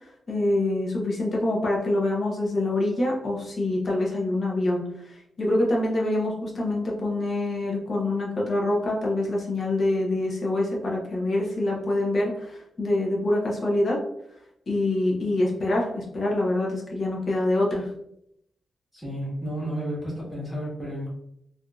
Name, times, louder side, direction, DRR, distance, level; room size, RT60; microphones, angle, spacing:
voice 1, 0.0-14.0 14.7-17.9, left 1 dB, 40° left, -2 dB, 0.9 m, -25 dB
voice 2, 18.9-21.1, equal, 5° left, -7 dB, 1.4 m, -32 dB
3.5 x 2.6 x 2.3 m, 0.75 s
wide cardioid pair, 135°, 0 cm